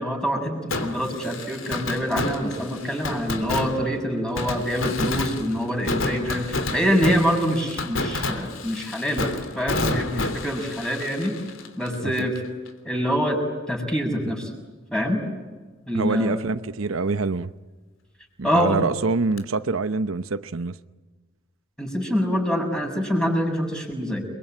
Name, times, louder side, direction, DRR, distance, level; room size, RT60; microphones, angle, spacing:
voice 1, 0.0-9.3 9.5-11.3 11.8-12.4 12.8-13.4 13.7-14.5 14.9-15.2 15.9-16.4 18.4-18.8 21.8-24.3, equal, 5° left, 6.7 m, -25 dB
Fireworks, 0.7-12.4 12.7-12.8 19.4-19.5, left 2 dB, 75° left, 3.2 m, -30 dB
voice 2, 15.9-17.5 18.4-20.7, right 3 dB, 85° right, 0.9 m, -25 dB
30.0 x 22.5 x 9.0 m
head